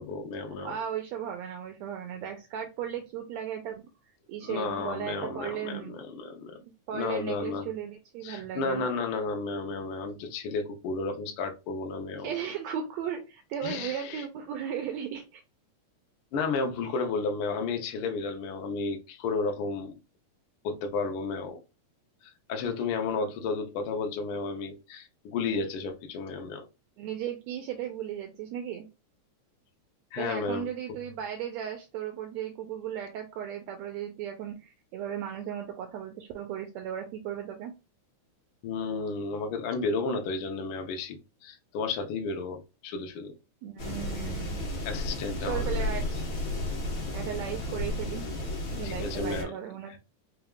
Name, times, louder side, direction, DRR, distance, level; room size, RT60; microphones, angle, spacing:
voice 1, 0.0-0.8 4.4-6.6 6.9-7.7 8.2-12.3 13.6-14.2 16.3-19.9 20.6-21.6 22.2-26.6 30.1-30.7 38.6-43.3 44.8-45.8 48.8-49.5 49.9-50.0, left 4 dB, 70° left, 1.3 m, -32 dB
voice 2, 0.6-3.8 4.3-6.0 6.6-8.8 12.2-15.4 27.0-28.9 30.2-37.7 43.6-44.6 45.4-46.1 47.1-48.2 48.7-50.0, right 9 dB, 80° right, 1.7 m, -36 dB
sound 1, 43.8-49.4, left 1 dB, 50° left, 1.7 m, -33 dB
4.8 x 3.4 x 2.3 m
omnidirectional pair, 3.5 m